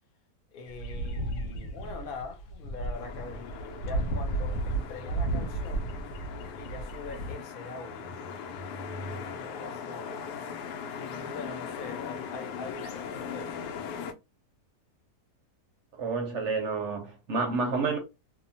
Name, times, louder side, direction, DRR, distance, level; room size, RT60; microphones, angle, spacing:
voice 1, 0.5-6.0 6.5-8.1 9.1-10.3 11.0-13.6, left 4 dB, 55° left, 0.6 m, -43 dB
sound 1, 0.7-7.3, right 2 dB, 75° left, 1.1 m, -33 dB
sound 2, 2.9-14.1, left 6 dB, 90° left, 1.2 m, -39 dB
voice 2, 16.0-18.0, right 4 dB, 65° right, 0.7 m, -29 dB
2.8 x 2.1 x 2.6 m
omnidirectional pair, 1.7 m